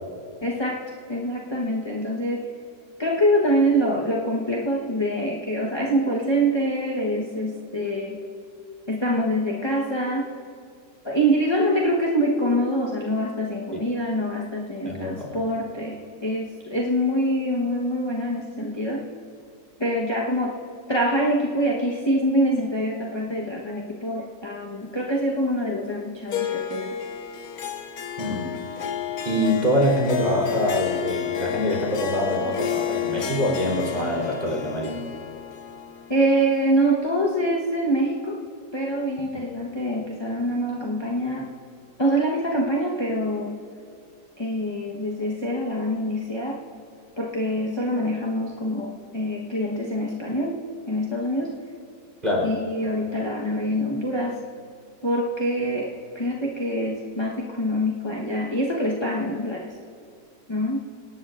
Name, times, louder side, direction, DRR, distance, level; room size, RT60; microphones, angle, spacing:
voice 1, 0.4-0.8 1.1-2.5 3.0-8.2 8.9-10.3 11.0-19.0 19.8-20.5 20.9-26.9 36.1-38.4 38.7-41.5 42.0-43.6 44.4-46.6 47.2-51.6 52.4-54.4 55.0-59.7 60.5-60.8, equal, 20° left, -3 dB, 0.9 m, -25 dB
voice 2, 14.8-15.4 28.2-28.6 29.2-35.0 52.2-52.5, left 1 dB, 25° right, -2 dB, 3.6 m, -24 dB
Harp, 26.3-36.9, left 8 dB, 60° left, 1.3 m, -31 dB
27.0 x 18.0 x 2.5 m, 2.4 s
omnidirectional pair, 1.9 m